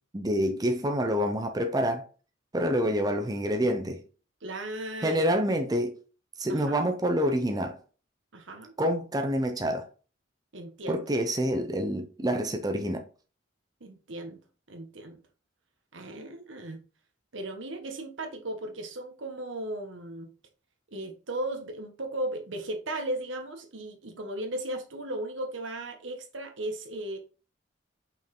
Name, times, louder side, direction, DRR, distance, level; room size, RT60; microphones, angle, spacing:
voice 1, 0.1-2.0 2.5-4.0 5.0-6.0 6.4-7.8 8.8-9.9 10.9-13.0, equal, 20° right, 0.6 m, -27 dB
voice 2, 4.4-5.3 6.5-6.8 8.3-8.7 10.5-11.1 13.8-14.4 14.7-15.2 15.9-16.8 17.3-20.3 20.9-27.2, right 1 dB, 80° right, 1.4 m, -36 dB
5.7 x 4.7 x 3.7 m
head